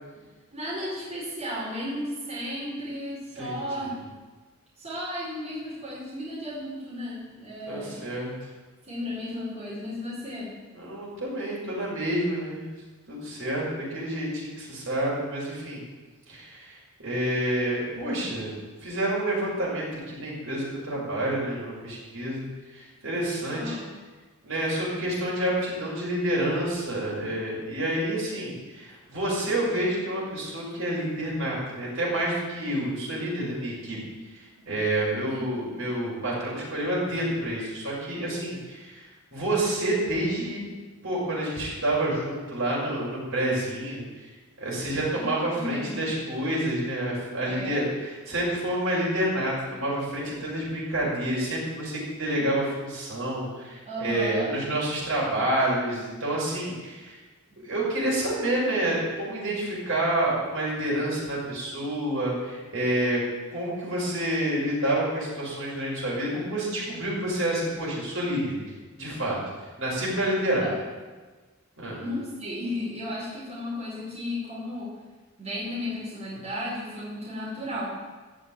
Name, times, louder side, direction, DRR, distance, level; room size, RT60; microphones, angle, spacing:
voice 1, 0.5-3.9 4.8-8.0 8.8-10.5 23.5-23.9 35.3-35.4 45.2-46.1 47.5-47.9 53.9-54.5 57.5-57.6 70.6-70.7 72.0-74.9 75.4-77.9, left 1 dB, 30° right, -7 dB, 4.9 m, -34 dB
voice 2, 3.4-3.9 7.7-8.3 10.7-12.7 13.1-15.8 16.3-18.5 18.8-22.4 22.7-23.8 24.4-34.0 34.3-39.1 39.3-40.6 41.0-44.0 44.6-57.2 57.6-63.2 63.5-68.6 69.0-69.4 69.8-70.6 71.8-72.0, right 1 dB, 60° right, -5 dB, 6.0 m, -28 dB
15.5 x 7.4 x 9.0 m, 1.3 s
head